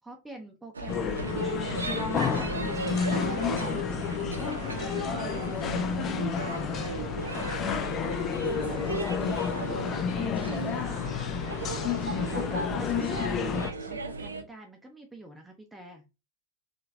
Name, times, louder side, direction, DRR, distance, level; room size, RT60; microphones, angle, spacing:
voice 1, 0.0-1.8 2.1-2.8 3.1-6.4 6.8-7.2 8.1-16.1, right 1 dB, 5° right, 2 dB, 0.8 m, -47 dB
sound 1, 0.7-14.4, right 3 dB, 75° right, 0.5 m, -35 dB
sound 2, 0.9-13.7, left 7 dB, 30° left, 0.5 m, -31 dB
4.0 x 3.2 x 2.7 m, 0.26 s
figure-of-eight pair, 90°, 0 cm